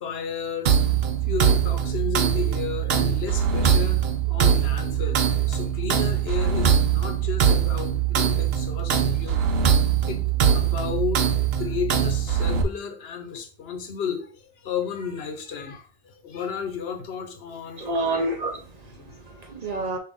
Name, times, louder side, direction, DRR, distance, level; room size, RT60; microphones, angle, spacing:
voice 1, 0.0-0.8 1.3-9.5 10.1-10.3 10.5-11.3 11.6-18.0 19.0-19.1, left 7 dB, 75° left, 5 dB, 1.0 m, -33 dB
sound 1, 0.7-12.6, right 8 dB, 75° right, 0.9 m, -22 dB
voice 2, 17.8-20.0, right 2 dB, 45° right, 3 dB, 0.7 m, -29 dB
5.6 x 2.5 x 3.5 m, 0.43 s
omnidirectional pair, 1.0 m